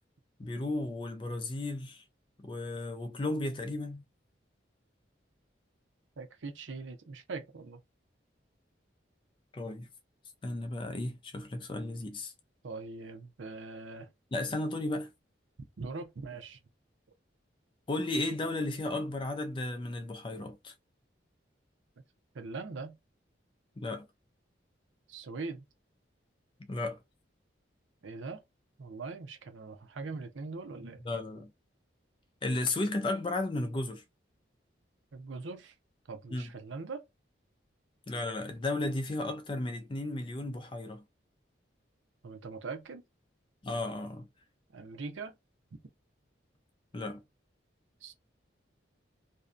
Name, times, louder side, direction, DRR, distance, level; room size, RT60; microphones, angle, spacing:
voice 1, 0.4-2.0 2.4-4.0 9.5-9.9 10.4-12.3 14.3-15.1 17.9-20.7 23.8-24.1 26.6-27.0 31.0-31.5 32.4-34.0 36.3-36.5 38.1-41.0 43.6-44.3 46.9-47.2, left 2 dB, 25° left, 0.3 m, -34 dB
voice 2, 6.2-7.8 12.6-14.1 15.8-16.6 22.3-23.0 25.1-25.7 28.0-28.4 28.8-31.0 35.1-35.7 36.1-37.0 42.2-43.0 44.7-45.3 48.0-48.1, right 4 dB, 85° right, 0.6 m, -41 dB
2.6 x 2.1 x 2.4 m
head